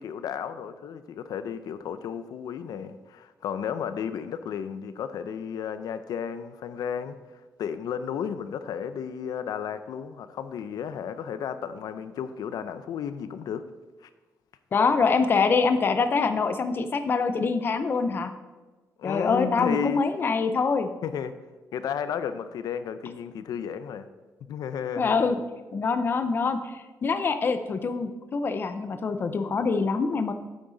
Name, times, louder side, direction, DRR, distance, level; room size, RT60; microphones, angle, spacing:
voice 1, 0.0-7.2 7.6-13.6 14.0-14.1 19.0-20.0 21.0-21.3 21.7-24.1 24.4-25.2, left 8 dB, 85° left, 11 dB, 0.6 m, -33 dB
voice 2, 14.7-18.3 19.0-20.9 25.0-25.4 25.7-30.3, left 4 dB, 35° left, 9 dB, 0.5 m, -25 dB
9.0 x 8.8 x 3.9 m, 1.2 s
wide cardioid pair, 175°, 6 cm